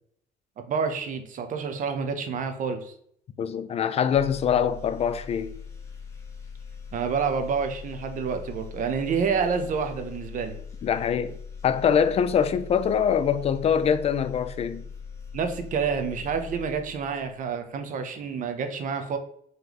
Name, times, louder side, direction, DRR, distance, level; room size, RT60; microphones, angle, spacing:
voice 1, 0.7-2.9 6.9-10.6 15.3-19.2, right 6 dB, 50° right, 0.7 m, -28 dB
voice 2, 3.4-5.5 10.8-11.3 11.6-14.8, left 7 dB, 40° left, 0.4 m, -24 dB
sound 1, 4.1-17.5, left 6 dB, 15° left, 1.0 m, -41 dB
3.9 x 3.2 x 2.9 m
cardioid pair, 110°, 17 cm